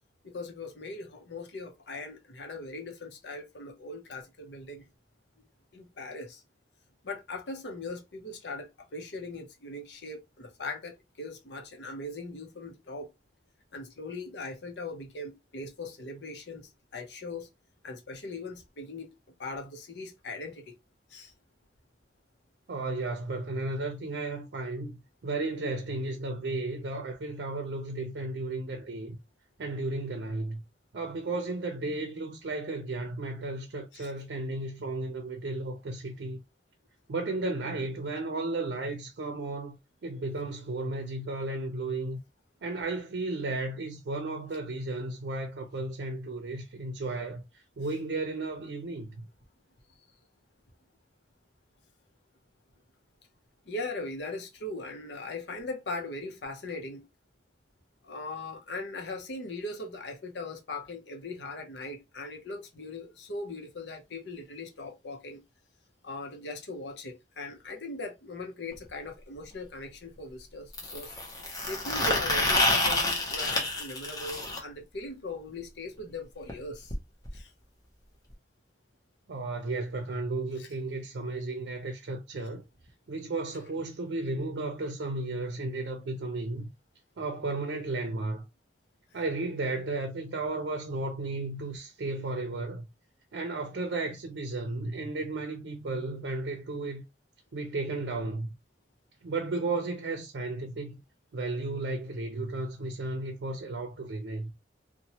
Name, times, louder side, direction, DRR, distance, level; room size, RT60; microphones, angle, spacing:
voice 1, 0.2-4.8 5.7-6.4 7.0-13.1 13.7-17.5 17.8-19.1 19.4-20.7 21.1-21.3 33.9-34.1 53.7-57.0 58.0-65.4 66.0-71.1 71.6-76.9 77.3-77.5 80.6-80.7, left 2 dB, 80° left, 0.7 m, -40 dB
voice 2, 22.7-29.2 29.6-30.6 30.9-36.4 37.1-39.8 40.0-42.2 42.6-49.3 79.3-82.6 83.1-86.7 87.2-88.4 89.1-92.9 93.3-97.0 97.5-98.5 99.2-101.0 101.3-104.5, right 2 dB, 85° right, 0.5 m, -34 dB
sound 1, 68.7-68.8 70.7-74.6 76.5-76.6 76.9-77.0 77.3-77.4 78.3-78.4, left 2 dB, 20° left, 0.7 m, -28 dB
2.8 x 2.2 x 2.9 m
head